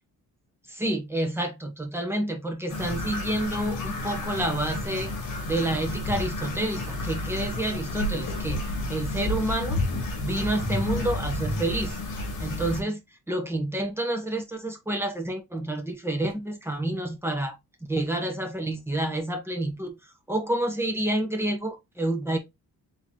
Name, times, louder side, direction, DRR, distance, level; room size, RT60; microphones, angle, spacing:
voice 1, 0.7-5.1 5.5-8.6 8.9-9.8 10.2-12.0 12.4-13.0 13.3-17.6 17.9-22.4, right 1 dB, 5° right, 1.1 m, -29 dB
sound 1, 2.7-12.8, left 2 dB, 60° left, 1.8 m, -31 dB
4.1 x 3.9 x 3.0 m
cardioid pair, 145°, 35 cm